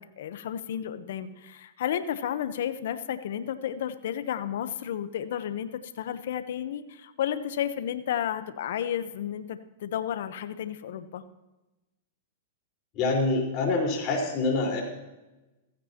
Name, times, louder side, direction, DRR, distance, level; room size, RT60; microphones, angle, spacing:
voice 1, 0.0-11.2, left 10 dB, 70° left, 11 dB, 1.0 m, -32 dB
voice 2, 12.9-14.8, left 3 dB, 40° left, 0 dB, 4.6 m, -26 dB
16.0 x 15.0 x 3.0 m, 1.0 s
hypercardioid pair, 130°, 0 cm